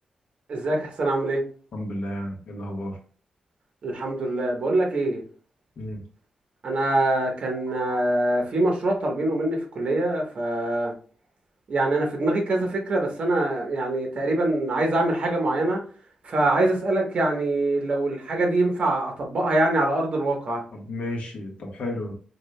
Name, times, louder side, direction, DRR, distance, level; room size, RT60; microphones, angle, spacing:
voice 1, 0.5-1.4 3.8-5.2 6.6-10.9 11.7-15.8 16.2-20.6, right 2 dB, 50° right, 1.1 m, -24 dB
voice 2, 1.7-3.0 5.8-6.0 20.7-22.1, left 1 dB, 60° left, 1.1 m, -32 dB
4.7 x 2.7 x 2.2 m
wide cardioid pair, 145°, 2 cm